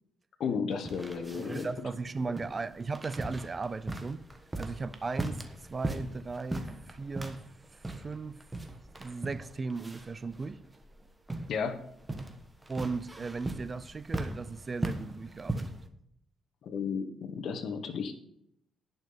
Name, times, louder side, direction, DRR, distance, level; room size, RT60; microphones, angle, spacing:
voice 1, 0.4-1.7 11.5-11.8 16.6-18.1, left 6 dB, 65° left, 1.3 m, -33 dB
sound 1, 0.7-15.9, right 2 dB, 15° right, 1.3 m, -39 dB
voice 2, 1.4-4.2 4.6-7.5 7.7-8.4 9.0-10.6 12.7-15.8, right 4 dB, 30° right, 0.5 m, -37 dB
10.5 x 5.8 x 6.8 m
cardioid pair, 90°, 0 cm